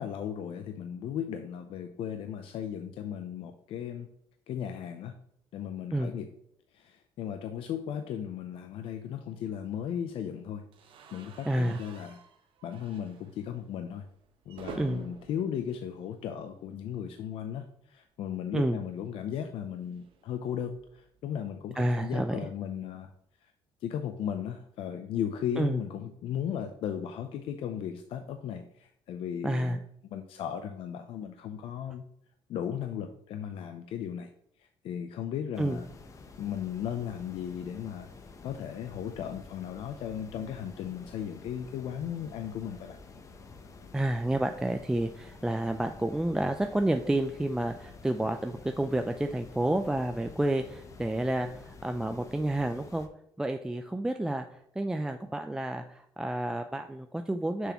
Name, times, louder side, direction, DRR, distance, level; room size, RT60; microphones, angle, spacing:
voice 1, 0.0-4.1 4.5-5.1 5.5-6.3 6.7-10.6 11.1-12.2 12.6-14.0 14.5-23.1 23.8-29.8 30.1-32.0 32.5-34.3 34.8-35.8 36.4-38.1 38.4-43.0, left 9 dB, 70° left, 7 dB, 0.5 m, -36 dB
sound 1, 10.7-16.8 17.1-17.3 17.5-17.6 18.9-21.2, right 6 dB, 65° right, 0.9 m, -51 dB
voice 2, 11.5-11.8 14.8-15.0 18.5-18.8 21.8-22.4 25.6-25.8 29.4-29.8 35.6-35.8 43.9-53.1 53.4-54.5 54.8-57.7, right 1 dB, 5° right, 6 dB, 0.3 m, -30 dB
sound 2, 35.5-53.1, left 4 dB, 35° left, 0.8 m, -50 dB
6.7 x 6.1 x 3.0 m, 0.72 s
cardioid pair, 120°, 10 cm